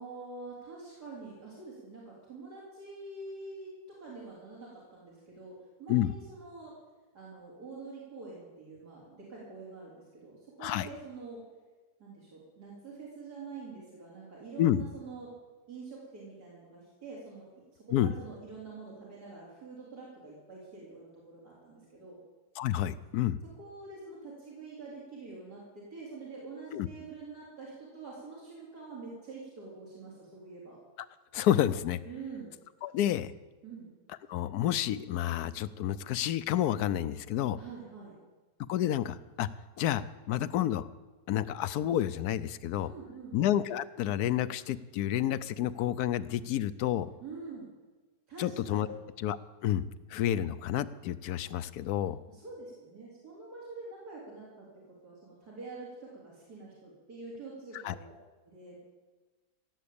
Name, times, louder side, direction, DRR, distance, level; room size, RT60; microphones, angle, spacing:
voice 1, 0.0-6.7 7.1-11.4 12.0-15.3 15.7-17.4 17.9-22.2 23.6-30.8 32.0-32.5 33.6-33.9 37.6-38.1 42.8-43.4 47.2-47.7 48.3-49.0 52.3-54.7 55.0-58.1 58.4-58.8, right 4 dB, 80° right, -7 dB, 4.1 m, -46 dB
voice 2, 22.6-23.4 26.7-26.9 31.3-32.0 32.8-33.3 34.3-37.6 38.7-39.5 39.8-40.9 41.3-42.9 43.3-47.1 48.4-49.4 49.6-49.8 50.1-52.2 57.8-57.9, left 12 dB, 80° left, 15 dB, 1.1 m, -29 dB
16.5 x 7.4 x 8.5 m, 1.2 s
omnidirectional pair, 1.7 m